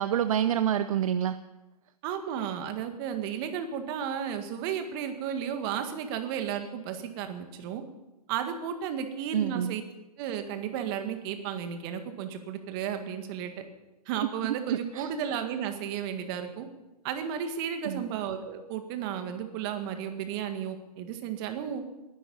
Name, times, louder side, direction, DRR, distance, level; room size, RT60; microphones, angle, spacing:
voice 1, 0.0-1.4 9.3-9.8 14.4-15.1 17.9-18.0, right 9 dB, 60° right, 12 dB, 0.7 m, -28 dB
voice 2, 2.0-7.8 8.3-9.8 10.2-13.5 14.1-16.7 17.0-21.8, right 8 dB, 35° right, 7 dB, 1.9 m, -33 dB
19.0 x 11.5 x 5.5 m, 1.0 s
hypercardioid pair, 130°, 20 cm